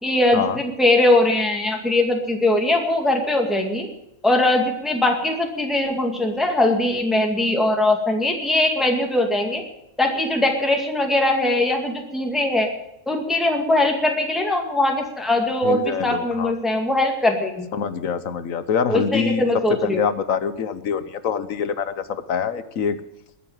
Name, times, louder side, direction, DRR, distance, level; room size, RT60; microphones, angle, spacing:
voice 1, 0.0-3.9 4.2-9.6 10.0-12.7 13.1-17.7 18.9-20.0, left 1 dB, ahead, 2 dB, 2.1 m, -21 dB
voice 2, 15.6-16.5 17.7-19.4 19.7-23.0, left 6 dB, 80° left, 13 dB, 1.5 m, -25 dB
21.0 x 8.4 x 7.4 m, 0.84 s
omnidirectional pair, 1.4 m